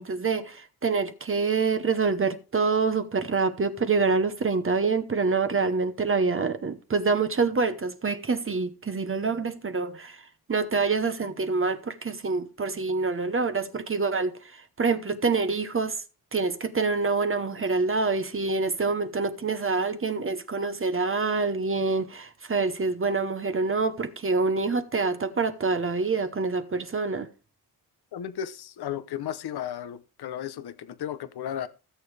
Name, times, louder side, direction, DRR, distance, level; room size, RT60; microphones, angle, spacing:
voice 1, 0.0-10.2 10.5-16.0 16.3-27.3, right 4 dB, 35° right, 1.0 m, -26 dB
voice 2, 28.1-31.7, left 10 dB, 90° left, 0.8 m, -34 dB
17.0 x 7.1 x 3.3 m
wide cardioid pair, 105°, 38 cm